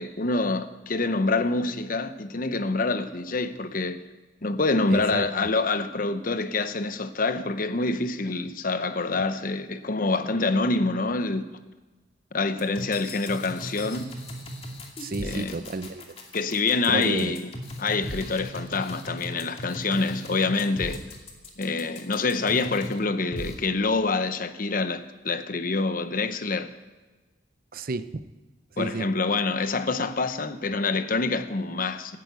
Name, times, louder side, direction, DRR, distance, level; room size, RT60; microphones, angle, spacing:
voice 1, 0.0-4.0 4.4-11.4 12.3-14.1 15.2-15.5 16.3-17.5 17.8-21.0 21.6-26.7 28.8-32.2, left 3 dB, 50° left, 0.9 m, -26 dB
voice 2, 4.9-5.5 15.0-16.2 16.9-17.3 27.7-28.2 28.7-29.1, right 2 dB, 50° right, 0.7 m, -32 dB
sound 1, 12.6-23.0 23.3-23.5, left 1 dB, 35° left, 2.5 m, -37 dB
14.5 x 11.0 x 8.2 m
head